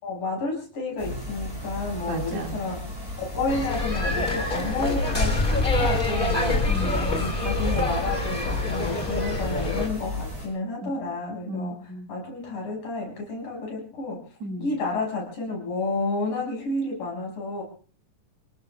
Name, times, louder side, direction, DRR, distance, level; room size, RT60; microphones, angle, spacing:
voice 1, 0.0-6.8 7.2-11.8 12.1-14.2 14.6-17.6, left 3 dB, 75° left, 0 dB, 7.7 m, -31 dB
sound 1, 1.0-10.5, left 1 dB, 5° right, 6.8 m, -34 dB
voice 2, 2.1-2.6 6.7-7.2 10.8-10.9 11.5-12.1 14.4-14.7, right 1 dB, 55° right, 1 dB, 3.3 m, -34 dB
sound 2, 3.5-9.9, left 2 dB, 20° left, 1.8 m, -26 dB
28.0 x 18.5 x 2.3 m, 0.40 s
omnidirectional pair, 4.0 m